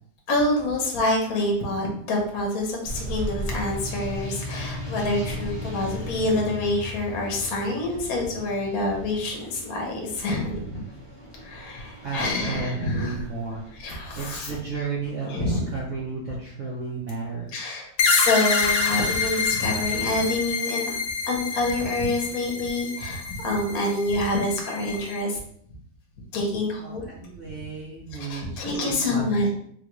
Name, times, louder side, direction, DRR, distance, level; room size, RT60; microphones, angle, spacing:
voice 1, 0.3-10.8 11.4-13.2 13.8-14.6 15.2-15.7 17.5-21.0 21.2-25.4 26.3-27.1 28.1-29.5, left 2 dB, 60° left, 0 dB, 1.1 m, -27 dB
sound 1, 2.8-14.6, left 1 dB, 25° left, 0.7 m, -37 dB
voice 2, 12.0-13.6 14.2-17.8 26.8-29.3, right 4 dB, 75° right, -5 dB, 0.6 m, -33 dB
sound 2, 18.0-25.2, left 4 dB, 85° left, 0.7 m, -27 dB
3.7 x 2.3 x 2.9 m, 0.64 s
omnidirectional pair, 2.1 m